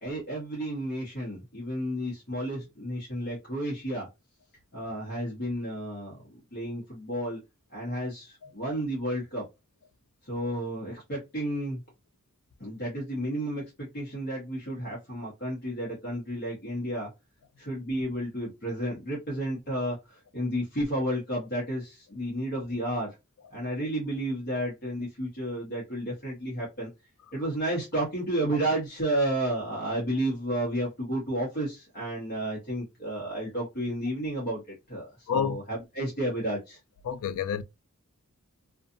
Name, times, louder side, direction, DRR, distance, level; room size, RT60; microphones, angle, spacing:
voice 1, 0.0-4.1 4.7-6.2 6.5-7.4 7.7-9.4 10.3-11.8 12.6-17.1 17.6-20.0 20.3-23.1 23.5-26.9 27.3-34.6 34.9-36.8, right 1 dB, 45° left, 1.0 m, -32 dB
voice 2, 35.3-35.6 37.0-37.6, left 7 dB, 70° left, 0.3 m, -28 dB
2.6 x 2.4 x 2.4 m
head